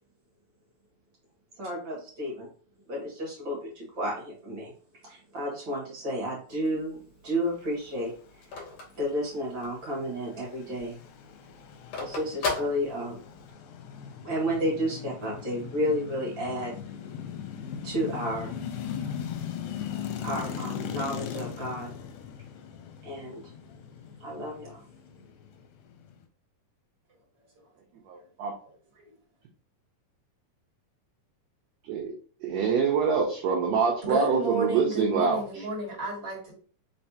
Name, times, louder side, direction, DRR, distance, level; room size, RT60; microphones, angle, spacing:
voice 1, 1.6-2.5 2.9-4.7 5.0-7.0 7.2-8.1 9.0-11.0 12.0-13.2 14.2-16.7 17.8-18.5 20.2-21.9 23.0-23.4 24.2-24.8, equal, 45° right, -3 dB, 2.0 m, -31 dB
Telephone, 6.5-9.9 10.3-10.4 10.6-13.5, left 4 dB, 60° left, 1.8 m, -36 dB
sound 1, 9.5-26.3, left 8 dB, 80° left, 2.1 m, -39 dB
voice 2, 28.1-28.5 31.9-32.1 32.4-35.6, right 6 dB, 75° right, 0 dB, 1.6 m, -25 dB
voice 3, 34.0-36.5, right 1 dB, 25° right, -4 dB, 2.4 m, -31 dB
4.7 x 3.3 x 2.8 m, 0.41 s
omnidirectional pair, 3.7 m